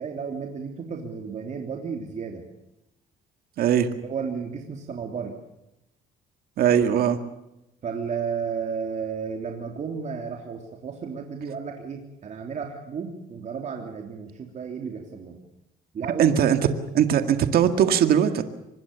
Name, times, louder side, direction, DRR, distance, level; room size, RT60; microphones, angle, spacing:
voice 1, 0.0-2.5 4.0-5.3 7.8-15.4 15.9-16.4, right 6 dB, 45° right, 2 dB, 3.3 m, -33 dB
voice 2, 3.6-3.9 6.6-7.2 16.2-16.6 16.9-18.4, right 9 dB, 65° right, 8 dB, 2.0 m, -20 dB
25.0 x 20.5 x 6.9 m, 0.89 s
cardioid pair, 110°, 17 cm